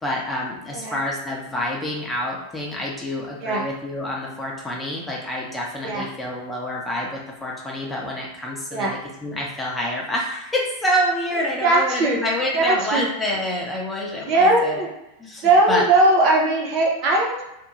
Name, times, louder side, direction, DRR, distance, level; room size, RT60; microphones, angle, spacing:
voice 1, 0.0-14.8 15.2-15.8, equal, 10° left, -3 dB, 0.7 m, -27 dB
voice 2, 11.6-12.2 12.5-13.1 14.3-14.9 15.4-17.4, right 2 dB, 40° right, -1 dB, 0.6 m, -19 dB
2.5 x 2.2 x 3.0 m, 0.90 s
figure-of-eight pair, 90°, 0 cm